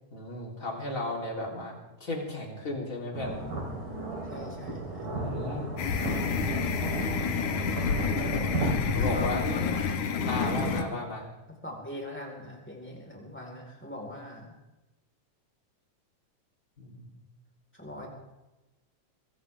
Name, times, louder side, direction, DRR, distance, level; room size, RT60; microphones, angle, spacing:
voice 1, 0.1-3.4 5.0-5.7 8.9-9.4 10.3-11.2 16.8-17.1, left 2 dB, 25° left, -1 dB, 3.6 m, -34 dB
sound 1, 3.1-8.7, right 2 dB, 90° right, 5.8 m, -34 dB
voice 2, 4.3-5.1 9.0-10.8 11.6-14.5 17.7-18.1, left 1 dB, 5° left, 0 dB, 3.8 m, -40 dB
sound 2, 5.8-10.8, left 5 dB, 70° left, 2.6 m, -29 dB
23.5 x 16.5 x 3.6 m, 1.0 s
omnidirectional pair, 3.7 m